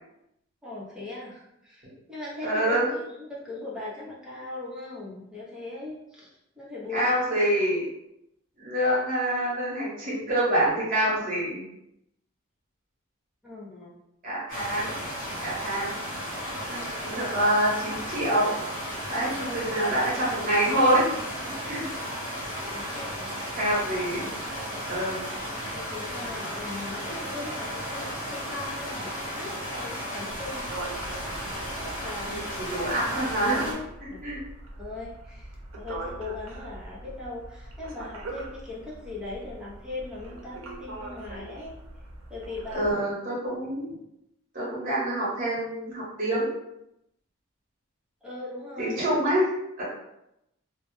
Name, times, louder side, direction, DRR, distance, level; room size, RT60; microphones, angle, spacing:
voice 1, 0.6-6.3 6.5-7.2 13.4-13.9 22.7-23.4 25.7-30.7 31.5-32.4 34.1-34.2 34.8-41.8 42.3-43.0 48.2-49.0, left 2 dB, 5° right, -7 dB, 0.6 m, -39 dB
voice 2, 2.4-2.9 6.9-7.8 8.6-11.6 14.2-15.0 15.4-15.9 16.7-18.5 19.1-21.1 21.6-21.8 23.5-24.3 24.9-25.2 32.3-33.7 34.0-34.4 42.7-43.9 44.5-46.5 48.8-49.5 49.8-49.9, right 1 dB, 40° right, -7 dB, 0.9 m, -26 dB
sound 1, 14.5-33.7, equal, 40° left, 1.0 m, -34 dB
sound 2, 30.3-42.9, right 1 dB, 80° right, 0.5 m, -41 dB
2.1 x 2.1 x 3.0 m, 0.84 s
head